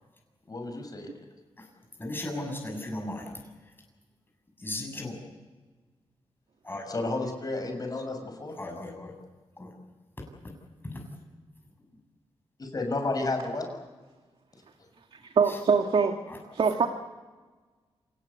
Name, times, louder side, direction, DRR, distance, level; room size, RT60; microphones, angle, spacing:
voice 1, 0.5-1.1 6.9-8.5 12.6-13.7, left 2 dB, 40° left, 5 dB, 6.3 m, -31 dB
voice 2, 2.0-3.4 4.6-5.2 6.6-6.8 8.6-9.1 9.6-9.7 10.8-11.1 15.5-15.6 16.3-16.4, left 1 dB, 20° left, 1 dB, 6.8 m, -36 dB
voice 3, 15.1-16.1 16.5-16.9, right 5 dB, 65° right, 5 dB, 1.9 m, -23 dB
27.0 x 18.5 x 8.3 m, 1.3 s
cardioid pair, 100°, 10 cm